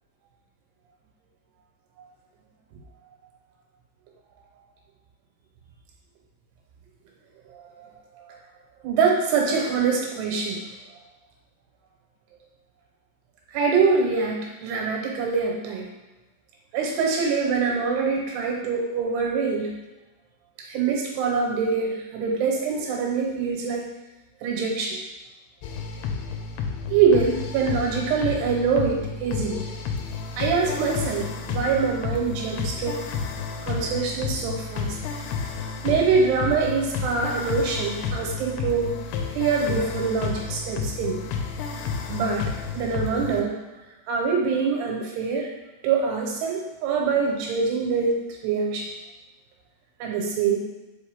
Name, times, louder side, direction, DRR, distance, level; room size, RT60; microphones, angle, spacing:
voice 1, 8.8-10.6 13.5-15.9 16.7-19.7 20.7-23.8 24.4-25.0 26.9-29.6 30.4-33.0 33.7-35.0 35.8-39.0 39.3-41.2 42.1-43.6 44.1-45.5 45.8-48.2 48.4-48.9 50.0-50.6, right 5 dB, 80° right, 0 dB, 3.0 m, -24 dB
sound 1, 25.6-43.4, left 5 dB, 80° left, 2.5 m, -31 dB
5.3 x 5.2 x 3.5 m, 1.0 s
omnidirectional pair, 4.8 m